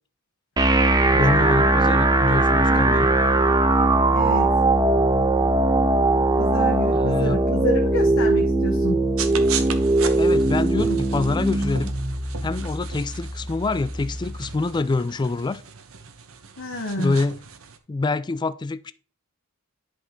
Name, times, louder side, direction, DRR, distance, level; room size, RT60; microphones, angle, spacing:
sound 1, 0.6-14.5, right 2 dB, 20° right, 0.7 m, -20 dB
voice 1, 1.1-3.1 6.9-7.4 10.2-11.9 12.4-15.6 17.0-17.4 17.9-18.9, left 3 dB, 20° left, 0.3 m, -26 dB
voice 2, 4.1-4.5 6.4-9.0 16.6-17.2, left 1 dB, 65° left, 1.1 m, -29 dB
sound 2, 9.2-17.8, right 7 dB, 70° right, 1.0 m, -36 dB
10.5 x 5.1 x 3.7 m
head